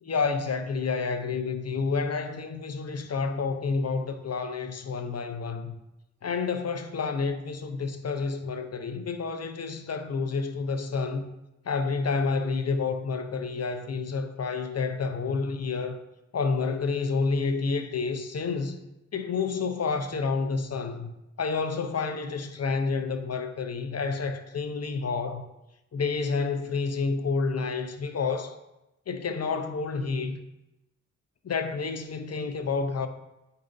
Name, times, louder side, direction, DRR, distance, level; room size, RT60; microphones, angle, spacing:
voice 1, 0.0-5.8 6.2-11.3 11.6-16.0 16.3-18.8 19.1-21.1 21.4-25.5 25.9-28.6 29.1-30.4 31.4-33.1, left 4 dB, 55° left, 0.7 m, -29 dB
8.5 x 5.5 x 2.7 m
cardioid pair, 60°, 30 cm